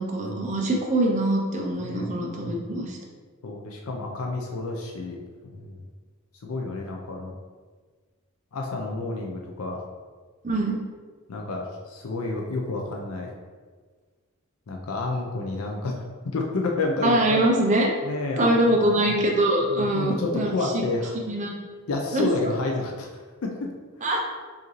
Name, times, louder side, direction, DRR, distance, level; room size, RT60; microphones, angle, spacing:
voice 1, 0.0-3.0 10.4-10.8 17.0-17.9 18.4-20.7 21.3-21.5 22.1-22.3 24.0-24.2, right 1 dB, 30° right, 0 dB, 0.5 m, -23 dB
voice 2, 1.8-2.6 3.4-5.2 5.4-5.8 6.4-7.3 8.5-9.8 11.3-13.3 14.7-15.9 16.3-17.4 18.0-19.2 19.7-21.2 21.9-23.1 23.4-23.7, left 3 dB, 70° left, 1 dB, 0.5 m, -30 dB
4.8 x 2.6 x 3.1 m, 1.5 s
head